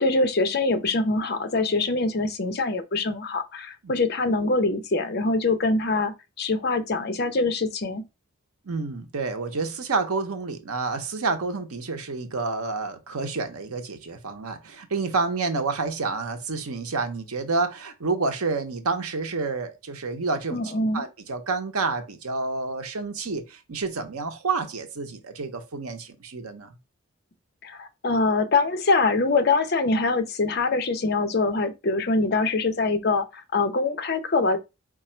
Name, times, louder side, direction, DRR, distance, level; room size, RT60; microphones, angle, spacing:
voice 1, 0.0-8.0 20.5-21.0 27.6-34.6, left 3 dB, 45° left, 0.6 m, -24 dB
voice 2, 8.6-20.6 20.9-26.7, right 4 dB, 90° right, 0.8 m, -29 dB
4.6 x 2.4 x 4.3 m
head